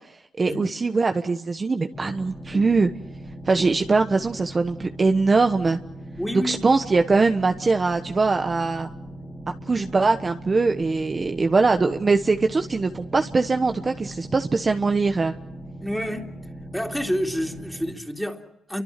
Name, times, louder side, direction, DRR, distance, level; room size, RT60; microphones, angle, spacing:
voice 1, 0.4-2.9 3.5-5.8 6.4-8.9 9.7-15.3, right 3 dB, 30° right, 1.2 m, -22 dB
sound 1, 1.9-17.9, right 1 dB, 20° left, 2.9 m, -39 dB
voice 2, 6.2-6.6 15.8-16.4 16.7-18.8, equal, ahead, 3.3 m, -29 dB
29.5 x 24.5 x 5.9 m
cardioid pair, 90°, 0 cm